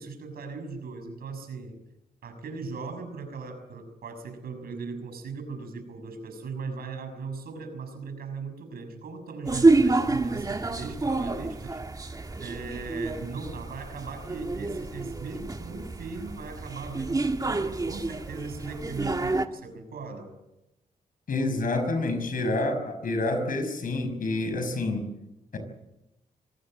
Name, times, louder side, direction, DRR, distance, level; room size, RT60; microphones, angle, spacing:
voice 1, 0.0-1.8 2.2-11.8 12.4-20.3, right 4 dB, 85° right, 6 dB, 6.2 m, -38 dB
sound 1, 9.4-19.5, right 3 dB, 25° right, 1.7 m, -28 dB
voice 2, 21.3-25.1 25.5-25.6, left 2 dB, 65° left, 8 dB, 5.8 m, -28 dB
25.0 x 18.0 x 7.7 m, 0.92 s
cardioid pair, 80°, 15 cm